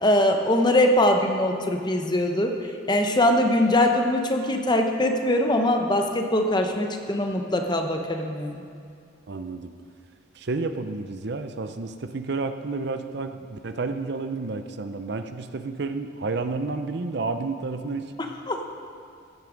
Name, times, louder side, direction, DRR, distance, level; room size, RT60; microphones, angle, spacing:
voice 1, 0.0-2.5 2.9-8.6 18.5-18.6, left 1 dB, 20° left, 4 dB, 0.9 m, -22 dB
voice 2, 9.3-9.7 10.4-18.1, right 3 dB, 55° right, 8 dB, 0.6 m, -30 dB
15.5 x 9.4 x 5.1 m, 2.3 s
head